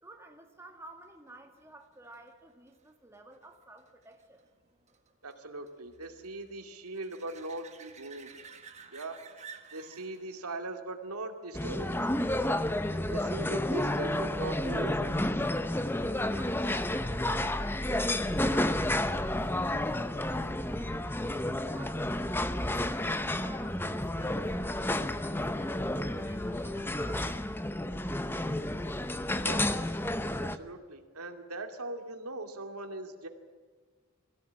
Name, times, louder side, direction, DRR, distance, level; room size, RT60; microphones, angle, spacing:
voice 1, 0.0-4.5 16.3-22.1 22.6-25.7 26.1-27.4, right 2 dB, 10° right, 3 dB, 2.1 m, -53 dB
sound 1, 1.3-12.6 18.2-18.3, right 6 dB, 30° right, 1.7 m, -55 dB
voice 2, 5.2-8.3 8.9-9.2 9.7-12.0 12.4-12.8 13.1-15.2 29.4-29.7 30.4-33.3, right 2 dB, 85° right, 5 dB, 2.5 m, -40 dB
sound 2, 11.5-30.6, left 1 dB, 10° left, 0.7 m, -31 dB
23.5 x 16.5 x 8.8 m, 1.5 s
head